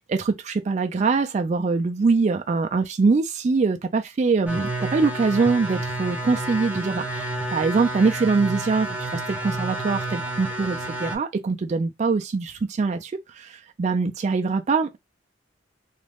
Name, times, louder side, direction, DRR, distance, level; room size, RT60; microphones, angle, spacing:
voice 1, 0.0-15.0, right 4 dB, 35° right, 0.3 m, -23 dB
sound 1, 4.5-11.2, right 2 dB, 10° right, 0.6 m, -30 dB
2.4 x 2.1 x 3.3 m
head